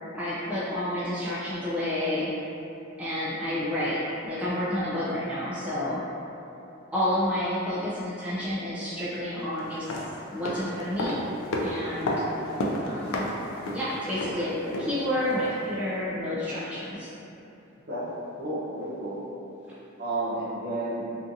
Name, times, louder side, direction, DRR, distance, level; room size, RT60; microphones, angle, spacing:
voice 1, 0.1-2.3 3.0-6.0 6.9-9.9 10.3-11.2 11.6-12.2 12.8-13.3 13.7-17.1, left 1 dB, 5° right, -10 dB, 0.3 m, -30 dB
sound 1, 9.7-15.7 15.9-16.0, left 1 dB, 90° left, 0.3 m, -32 dB
voice 2, 18.4-19.2 20.0-21.0, right 1 dB, 50° right, -8 dB, 0.7 m, -31 dB
2.5 x 2.4 x 2.6 m, 2.9 s
head